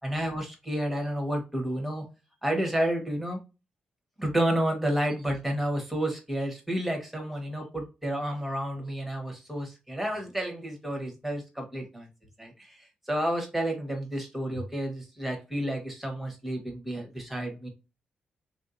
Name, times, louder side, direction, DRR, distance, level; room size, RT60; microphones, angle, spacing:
voice 1, 0.0-2.0 2.4-3.4 4.2-12.1 12.4-17.7, right 1 dB, 5° right, 2 dB, 1.0 m, -30 dB
3.5 x 2.6 x 2.5 m, 0.28 s
wide cardioid pair, 145°, 3 cm